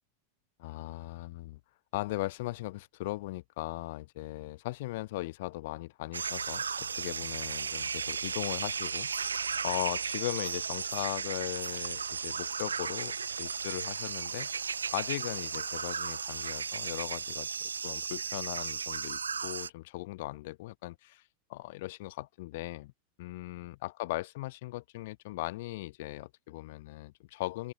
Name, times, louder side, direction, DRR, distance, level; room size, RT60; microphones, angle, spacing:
voice 1, 0.6-1.6 1.9-9.1 9.6-14.5 14.9-17.5 17.8-21.2 21.5-22.9 23.2-27.7, left 19 dB, 50° left, 4.0 m, -38 dB
sound 1, 6.1-19.7, right 6 dB, 75° right, 1.7 m, -35 dB
figure-of-eight pair, 90°, 0 cm